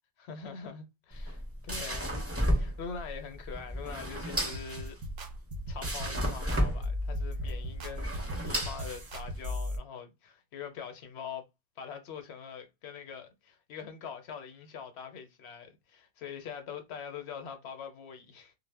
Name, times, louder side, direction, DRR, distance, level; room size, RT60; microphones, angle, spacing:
voice 1, 0.2-2.2 2.5-5.0 5.7-11.4 11.8-18.5, left 6 dB, 75° left, 0.8 m, -43 dB
sound 1, 1.1-9.5, equal, 20° right, 0.5 m, -33 dB
sound 2, 4.5-9.8, left 1 dB, 60° right, 0.7 m, -37 dB
2.1 x 2.0 x 3.3 m
omnidirectional pair, 1.1 m